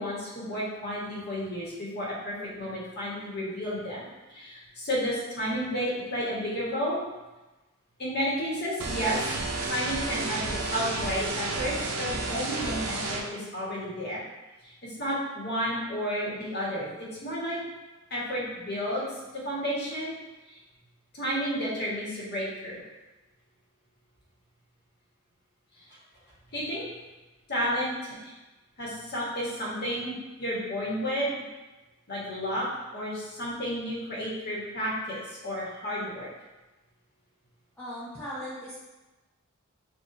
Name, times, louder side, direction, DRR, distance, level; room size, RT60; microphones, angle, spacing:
voice 1, 0.0-7.0 8.0-9.4 9.6-14.2 14.6-16.9 17.2-17.6 18.1-20.1 20.5-20.6 21.1-22.8 25.8-25.9 26.5-26.8 27.5-28.3 28.8-31.3 32.1-32.7 32.9-36.3, equal, 50° left, -6 dB, 1.4 m, -32 dB
sound 1, 8.8-13.2, right 3 dB, 70° right, 0.7 m, -31 dB
voice 2, 37.8-38.8, equal, 10° left, -11 dB, 0.8 m, -38 dB
6.4 x 2.6 x 2.7 m, 1.1 s
head